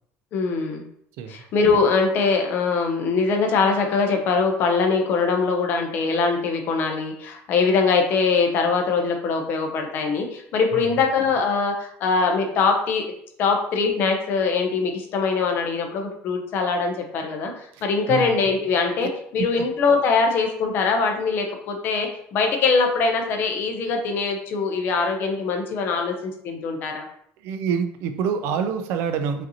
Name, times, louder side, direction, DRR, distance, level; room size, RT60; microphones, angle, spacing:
voice 1, 0.3-0.8 1.3-13.1 13.4-27.0, left 4 dB, 40° left, 3 dB, 0.7 m, -22 dB
voice 2, 27.4-29.5, right 6 dB, 60° right, 8 dB, 0.4 m, -26 dB
5.0 x 2.7 x 2.8 m, 0.67 s
cardioid pair, 175°, 5 cm